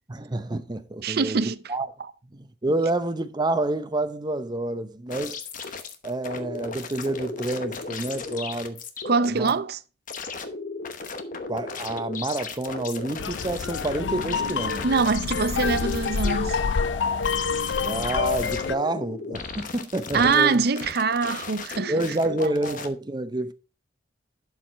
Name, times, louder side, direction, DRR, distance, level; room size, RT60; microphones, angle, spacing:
voice 1, 0.1-1.9 2.3-5.4 6.0-8.8 9.3-9.5 11.5-14.8 17.8-20.6 21.9-23.5, right 2 dB, 25° right, 0.7 m, -28 dB
voice 2, 1.0-1.6 9.0-9.8 14.8-16.6 20.1-22.5, right 4 dB, 60° right, 0.6 m, -24 dB
sound 1, 5.1-9.5 10.1-22.9, left 4 dB, 45° left, 1.0 m, -36 dB
sound 2, 13.2-18.7, left 5 dB, 85° left, 0.5 m, -27 dB
11.5 x 4.8 x 4.5 m
head